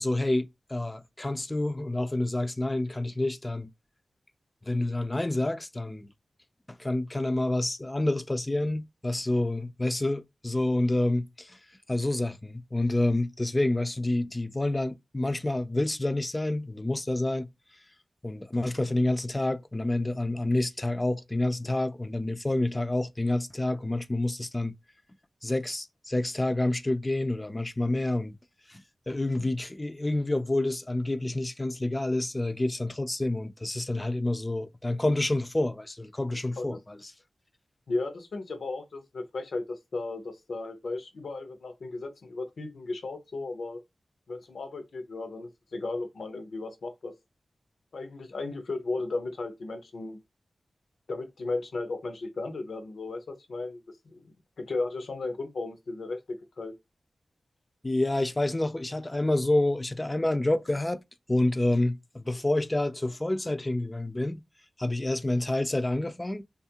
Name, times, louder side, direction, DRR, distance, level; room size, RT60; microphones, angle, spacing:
voice 1, 0.0-3.7 4.7-6.1 6.8-11.6 11.9-17.5 18.2-24.7 25.4-28.3 28.7-28.8 29.1-37.1 57.8-61.0 61.3-64.4 64.8-66.4, left 1 dB, 25° left, 0.4 m, -28 dB
voice 2, 37.9-43.8 44.3-47.1 47.9-50.2 51.1-56.7, left 3 dB, 80° left, 0.6 m, -35 dB
2.7 x 2.4 x 2.8 m
cardioid pair, 50°, 0 cm